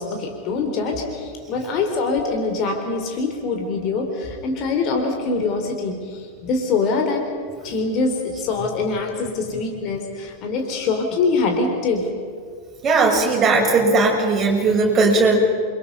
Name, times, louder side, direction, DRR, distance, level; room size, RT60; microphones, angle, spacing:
voice 1, 0.0-7.3 7.6-12.1, left 4 dB, 35° left, 4 dB, 3.6 m, -24 dB
voice 2, 12.8-15.4, right 3 dB, 25° right, -1 dB, 6.9 m, -17 dB
29.0 x 24.5 x 5.4 m, 2.1 s
figure-of-eight pair, 90°, 0 cm